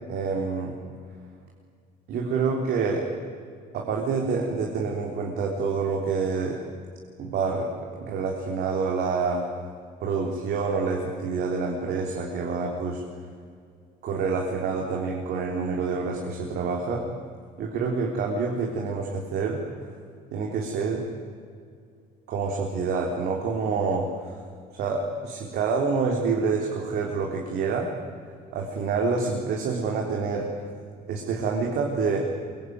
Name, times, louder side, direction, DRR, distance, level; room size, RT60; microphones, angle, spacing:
voice 1, 0.1-0.8 2.1-3.1 3.7-6.6 7.2-9.5 10.0-13.0 14.0-17.1 17.6-19.6 20.3-21.1 22.3-24.4 24.7-27.9 28.5-30.7 31.1-32.3, right 4 dB, 75° right, 0 dB, 3.7 m, -27 dB
23.5 x 23.0 x 9.5 m, 2.2 s
cardioid pair, 110°, 17 cm